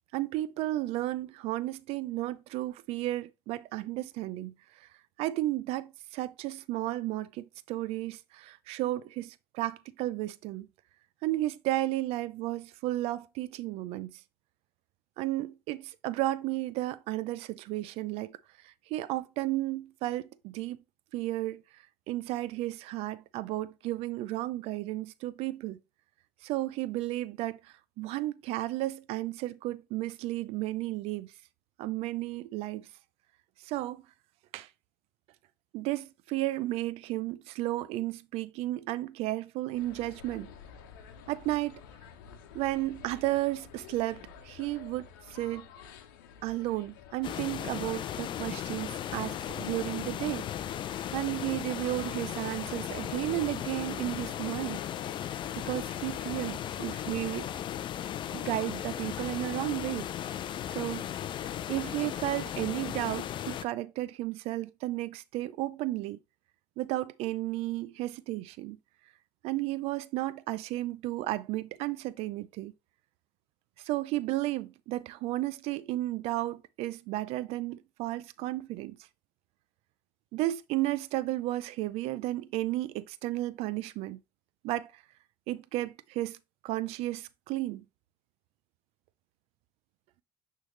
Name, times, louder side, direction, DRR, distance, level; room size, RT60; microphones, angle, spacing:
voice 1, 0.1-4.9 5.2-10.7 11.2-14.2 15.2-18.4 18.6-20.8 21.1-25.8 26.4-31.3 31.8-32.9 33.6-34.0 34.5-34.7 35.7-40.5 41.3-41.8 42.5-45.7 46.4-50.5 51.1-54.8 55.6-57.5 58.3-60.1 60.7-61.1 61.7-66.2 66.8-68.8 69.4-72.7 73.8-79.0 80.3-84.2 84.6-85.0 85.5-86.4 86.6-87.8, right 16 dB, 70° right, 0.5 m, -33 dB
sound 1, 39.7-56.5, left 7 dB, 90° left, 0.9 m, -51 dB
sound 2, 47.2-63.6, left 10 dB, 50° left, 0.5 m, -36 dB
9.1 x 3.5 x 3.2 m
supercardioid pair, 80°, 11 cm